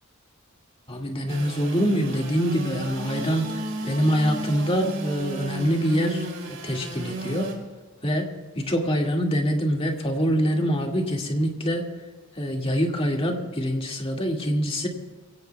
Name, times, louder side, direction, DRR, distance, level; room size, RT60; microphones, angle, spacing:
voice 1, 0.9-7.5 8.0-8.3 8.6-11.9 12.4-14.9, equal, 25° left, 1 dB, 2.0 m, -25 dB
Engine / Sawing, 1.3-7.5, right 1 dB, 65° right, 3.3 m, -34 dB
23.5 x 16.5 x 2.3 m, 1.4 s
head